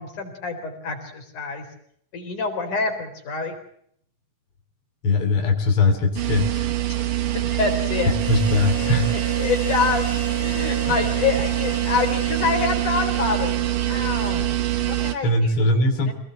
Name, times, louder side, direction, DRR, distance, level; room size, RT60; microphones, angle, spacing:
voice 1, 0.0-1.7 2.1-3.5 6.9-8.2 9.4-10.1 10.4-14.5 14.9-16.1, left 5 dB, 65° left, 5 dB, 5.5 m, -27 dB
voice 2, 5.0-6.7 8.3-9.2 10.8-11.0 15.2-16.1, left 2 dB, 40° left, 3 dB, 4.0 m, -20 dB
sound 1, 6.2-15.2, right 14 dB, 80° right, 3.5 m, -24 dB
Harmonica, 8.2-14.0, left 1 dB, 5° left, 3.5 m, -37 dB
27.0 x 19.0 x 7.7 m, 0.68 s
omnidirectional pair, 3.8 m